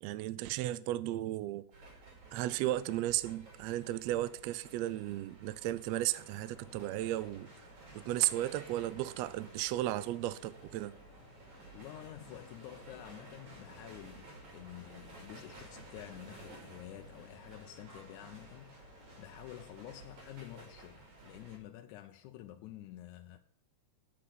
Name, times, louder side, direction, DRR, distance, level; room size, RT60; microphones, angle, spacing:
voice 1, 0.0-1.6 2.3-7.5 8.0-10.9, right 15 dB, 85° right, 1.5 m, -34 dB
sound 1, 1.7-21.6, right 2 dB, 65° right, 3.8 m, -54 dB
sound 2, 6.4-19.4, left 4 dB, 45° left, 1.5 m, -61 dB
voice 2, 11.7-23.4, left 13 dB, 80° left, 2.0 m, -49 dB
8.9 x 6.8 x 5.5 m
omnidirectional pair, 3.6 m